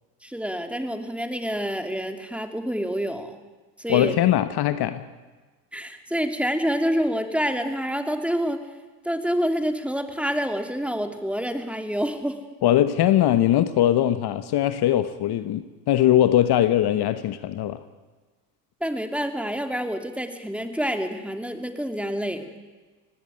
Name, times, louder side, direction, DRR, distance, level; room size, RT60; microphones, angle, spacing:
voice 1, 0.2-3.4 3.8-4.2 5.7-8.7 9.0-12.4 18.8-22.4, equal, 5° right, 7 dB, 2.7 m, -27 dB
voice 2, 3.9-5.0 12.6-17.8, left 12 dB, 55° left, 12 dB, 1.3 m, -21 dB
19.0 x 16.5 x 9.4 m, 1.3 s
hypercardioid pair, 75°, 47 cm